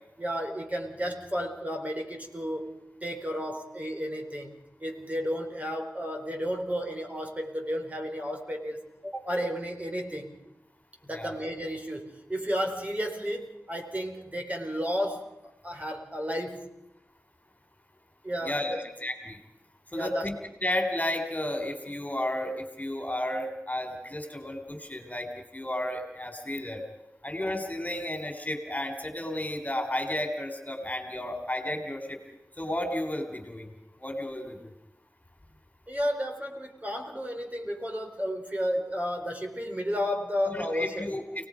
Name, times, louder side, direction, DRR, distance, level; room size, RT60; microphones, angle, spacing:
voice 1, 0.2-4.5 4.8-10.4 11.0-16.7 18.2-18.8 19.9-20.3 35.9-41.1, equal, 25° right, 3 dB, 4.6 m, -32 dB
voice 2, 18.4-19.4 19.9-20.4 20.6-26.8 27.2-32.2 32.6-33.7 34.0-34.7 40.5-41.2, left 1 dB, 25° left, 5 dB, 3.6 m, -32 dB
29.5 x 19.0 x 5.2 m, 0.86 s
cardioid pair, 40°, 6 cm